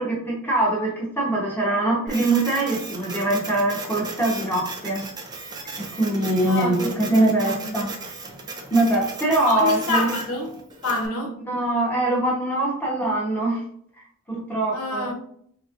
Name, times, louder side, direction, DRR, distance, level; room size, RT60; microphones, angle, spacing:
voice 1, 0.0-5.0 5.8-7.9 8.7-10.1 11.4-13.6 14.3-15.1, right 2 dB, 10° left, 1.0 m, -23 dB
Printer, 2.1-11.1, right 3 dB, 20° right, 0.5 m, -36 dB
voice 2, 6.5-7.0 7.4-7.8 9.4-10.6 10.8-11.4 14.7-15.1, left 2 dB, 85° left, 0.8 m, -27 dB
3.5 x 3.1 x 2.5 m
head